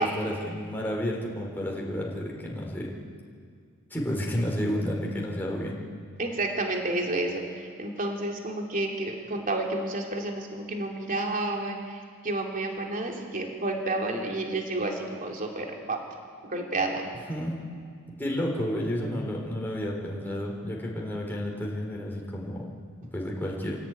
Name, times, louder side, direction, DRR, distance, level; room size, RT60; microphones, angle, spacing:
voice 1, 0.0-2.9 3.9-5.8 17.3-17.6 18.2-22.7 23.1-23.8, equal, 10° left, -3 dB, 3.9 m, -31 dB
voice 2, 6.2-16.0 16.5-17.1, right 2 dB, 40° right, 1 dB, 2.8 m, -30 dB
26.5 x 17.0 x 9.1 m, 2.2 s
head